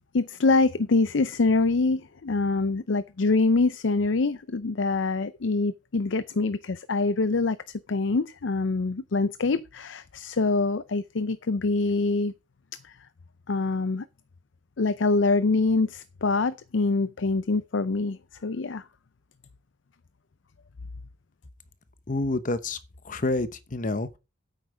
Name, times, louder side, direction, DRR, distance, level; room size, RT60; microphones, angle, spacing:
voice 1, 0.1-7.6 7.9-12.3 12.8-12.9 13.5-14.1 14.8-18.8, left 3 dB, 75° left, 0.6 m, -25 dB
voice 2, 22.1-22.8 23.0-24.2, left 2 dB, 45° left, 1.0 m, -28 dB
9.2 x 8.1 x 4.9 m
head